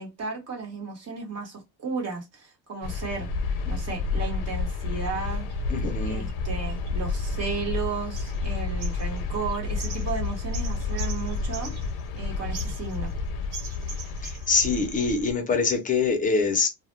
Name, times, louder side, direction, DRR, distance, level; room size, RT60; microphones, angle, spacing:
voice 1, 0.0-3.3 3.6-5.5 6.0-13.1, right 5 dB, 40° right, 1.2 m, -34 dB
sound 1, 2.8-15.3, left 4 dB, 75° left, 0.6 m, -30 dB
sound 2, 5.4-5.6 6.3-7.8 8.1-8.5 8.8-12.2 12.5-13.2 13.5-14.7, right 5 dB, 55° right, 0.8 m, -42 dB
voice 2, 5.7-6.3 14.2-16.7, left 4 dB, 20° left, 0.5 m, -24 dB
2.3 x 2.1 x 3.0 m
cardioid pair, 170°, 39 cm